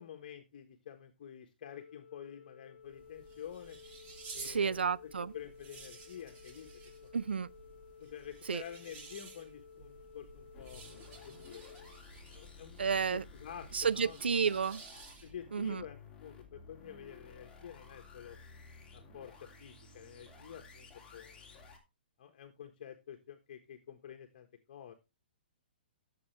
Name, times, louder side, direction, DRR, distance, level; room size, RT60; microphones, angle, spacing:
voice 1, 0.0-3.8 4.3-4.8 5.3-6.7 7.0-7.2 8.0-11.7 12.3-12.8 13.1-14.2 14.4-14.6 15.2-18.4 18.9-21.5 22.2-24.9, left 9 dB, 55° left, 1.3 m, -49 dB
Organ, 1.6-12.7, left 6 dB, 80° left, 0.9 m, -56 dB
sound 1, 2.8-15.5, right 4 dB, 30° right, 2.7 m, -53 dB
voice 2, 4.4-5.3 7.1-7.5 8.5-8.6 12.8-13.2 13.7-14.8 15.5-15.8, right 6 dB, 90° right, 0.5 m, -31 dB
sound 2, 10.5-21.8, left 4 dB, 15° left, 2.9 m, -55 dB
13.5 x 6.9 x 3.3 m
hypercardioid pair, 140°, 6 cm